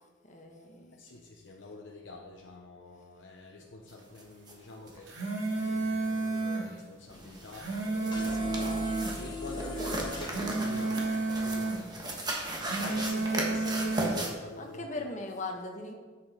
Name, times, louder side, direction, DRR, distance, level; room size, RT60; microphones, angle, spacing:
voice 1, 0.2-0.9 7.1-7.4 8.4-9.2 12.9-13.2 13.6-13.9 14.6-15.9, left 2 dB, 40° left, 3 dB, 1.2 m, -41 dB
voice 2, 1.0-5.1 5.5-8.7 9.0-11.0 11.3-12.5 12.8-15.1, left 2 dB, 75° left, 0 dB, 0.8 m, -46 dB
sound 1, 4.2-4.3 4.5-4.6 4.9-5.0 7.1-14.3, right 1 dB, 20° right, 1.3 m, -37 dB
sound 2, 4.9-6.7 7.3-9.1 10.0-11.8 12.4-14.2, right 3 dB, 75° right, 2.1 m, -31 dB
sound 3, 8.1-10.3, left 1 dB, 25° left, 1.1 m, -38 dB
9.5 x 7.0 x 4.1 m, 1.4 s
head